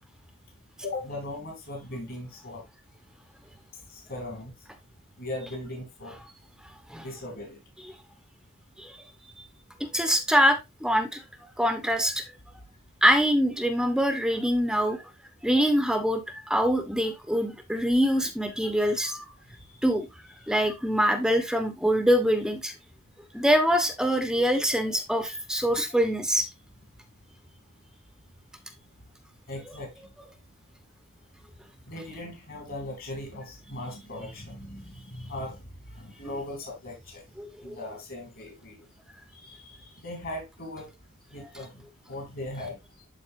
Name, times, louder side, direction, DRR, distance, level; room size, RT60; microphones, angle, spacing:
voice 1, 0.8-2.6 3.9-4.5 5.2-6.2 7.0-7.6 19.7-19.8 29.5-29.9 31.9-37.2 37.6-38.8 39.3-40.9 41.3-42.7, left 1 dB, 55° left, 2.6 m, -38 dB
voice 2, 9.8-11.2 11.6-12.2 13.0-15.0 15.4-16.2 16.5-19.2 19.8-20.1 20.5-22.7 23.3-26.5 37.4-37.7, equal, 5° right, 1.0 m, -24 dB
12.0 x 4.2 x 2.6 m
head